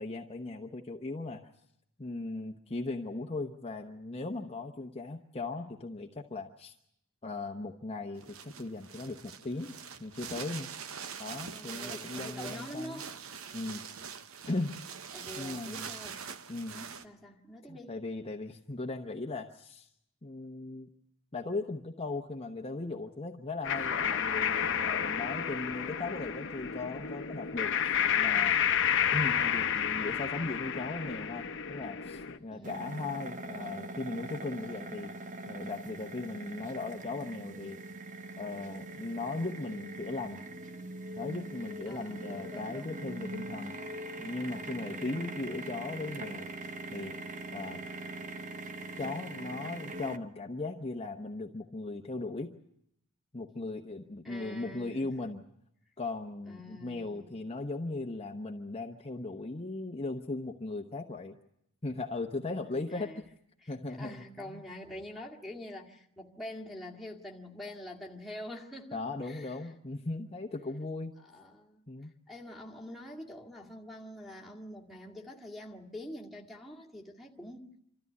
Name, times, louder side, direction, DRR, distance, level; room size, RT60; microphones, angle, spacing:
voice 1, 0.0-1.5 2.0-6.7 7.2-9.7 10.0-10.7 11.2-13.0 13.5-13.8 14.5-14.8 15.4-15.9 16.5-16.8 17.7-19.9 20.2-20.9 21.3-27.7 28.2-28.6 29.1-35.1 35.5-37.8 38.4-40.4 41.2-43.7 44.2-46.5 46.9-47.2 47.5-47.9 49.0-52.6 53.3-55.4 56.0-61.4 61.8-63.1 63.7-64.6 68.9-71.2 71.9-72.1, left 2 dB, 25° left, 0.9 m, -38 dB
sound 1, 8.1-17.0, right 7 dB, 70° right, 0.9 m, -44 dB
voice 2, 11.5-13.2 15.1-16.3 16.7-17.9 32.5-33.0 41.9-43.0 54.2-55.1 56.5-57.3 62.7-63.2 63.6-69.5 71.2-71.8 72.3-77.7, left 1 dB, ahead, 2.0 m, -46 dB
sound 2, 23.6-32.4, left 8 dB, 60° left, 0.9 m, -30 dB
sound 3, 32.6-50.2, right 2 dB, 35° right, 0.9 m, -42 dB
26.0 x 13.5 x 9.4 m
head